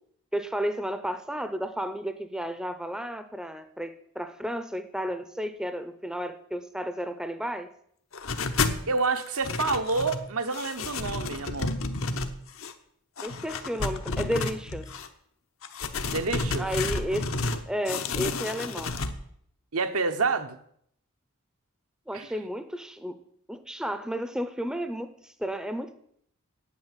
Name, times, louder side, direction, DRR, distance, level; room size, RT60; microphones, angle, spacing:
voice 1, 0.3-7.7 13.2-14.9 16.6-17.3 17.7-19.0 22.1-23.2 23.5-25.9, equal, 5° right, 0.6 m, -32 dB
sound 1, 8.1-8.8 9.2-10.2 10.5-12.7 13.2-15.1 15.6-17.6 17.9-19.1, left 3 dB, 65° left, 1.0 m, -31 dB
voice 2, 8.9-11.7 16.1-16.7 19.7-20.6 22.1-22.3, right 4 dB, 80° right, 1.1 m, -28 dB
9.0 x 8.5 x 9.1 m
head